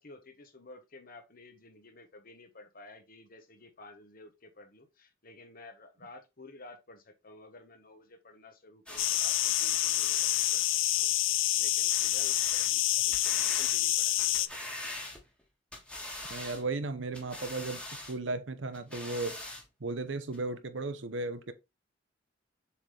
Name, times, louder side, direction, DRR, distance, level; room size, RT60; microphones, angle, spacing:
voice 1, 0.0-14.7, left 2 dB, 50° left, 1.3 m, -53 dB
sound 1, 8.9-10.8 11.9-12.7 13.1-13.8 14.2-15.4 15.7-16.6 17.1-18.2 18.7-19.6 20.3-20.4, left 1 dB, 5° left, 1.5 m, -43 dB
sound 2, 9.0-14.5, left 14 dB, 85° left, 0.5 m, -28 dB
voice 2, 16.3-19.4 19.8-21.5, right 3 dB, 75° right, 0.9 m, -35 dB
7.2 x 4.0 x 3.3 m
head